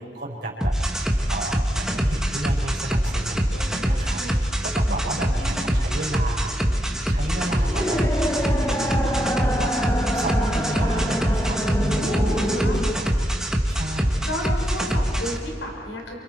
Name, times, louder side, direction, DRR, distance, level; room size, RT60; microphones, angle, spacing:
voice 1, 0.0-6.6 7.1-12.2 12.7-13.1 13.7-14.2, right 1 dB, 65° right, -5 dB, 5.0 m, -33 dB
sound 1, 0.6-15.4, equal, 5° right, 1.5 m, -24 dB
voice 2, 3.5-4.4 5.1-5.7 11.9-12.8 14.2-16.2, left 1 dB, 80° left, 1 dB, 4.3 m, -33 dB
sound 2, 6.9-12.9, equal, 15° left, 1.1 m, -27 dB
30.0 x 27.0 x 4.7 m, 2.5 s
head